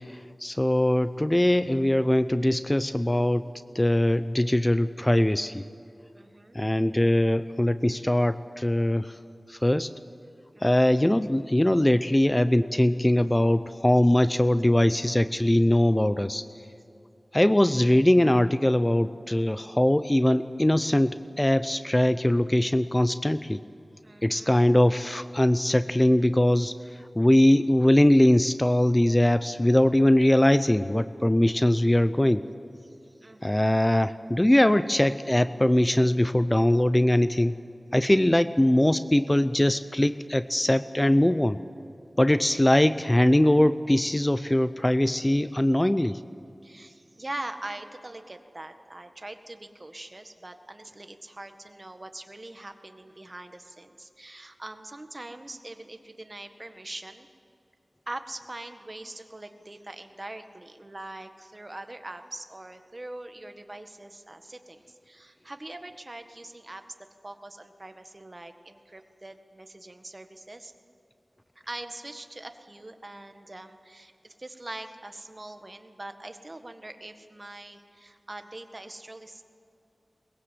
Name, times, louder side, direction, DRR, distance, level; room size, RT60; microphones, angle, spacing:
voice 1, 0.0-3.5 3.7-5.6 6.5-9.2 9.5-9.9 10.6-16.5 17.3-23.6 24.2-26.7 27.1-32.4 33.4-37.6 37.9-41.6 42.2-46.2, left 1 dB, 20° left, 13 dB, 0.6 m, -21 dB
voice 2, 6.1-6.6 10.5-10.9 24.0-24.6 32.8-33.7 46.6-57.3 58.1-66.8 67.2-70.7 71.7-79.4, right 2 dB, 40° right, 7 dB, 1.7 m, -42 dB
22.5 x 21.0 x 7.6 m, 2.7 s
wide cardioid pair, 65°, 0 cm